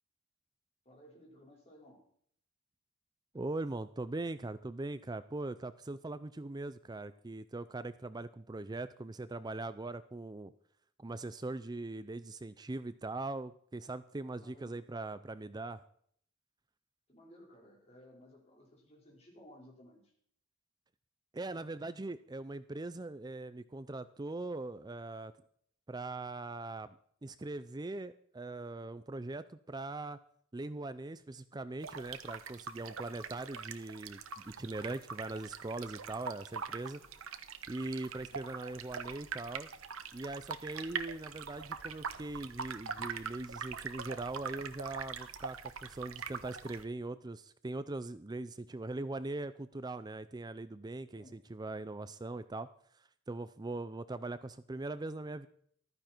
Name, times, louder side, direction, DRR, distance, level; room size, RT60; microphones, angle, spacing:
voice 1, 0.8-2.1 14.2-14.8 17.1-20.1 51.1-51.4, equal, 30° left, -1 dB, 5.0 m, -58 dB
voice 2, 3.3-10.5 11.0-15.8 21.3-25.3 25.9-26.9 27.2-30.2 30.5-37.0 37.7-39.7 40.1-52.7 52.9-55.5, right 2 dB, 20° right, 13 dB, 0.4 m, -41 dB
sound 1, 31.8-46.8, right 6 dB, 85° right, 1.1 m, -43 dB
15.0 x 13.0 x 4.5 m, 0.62 s
head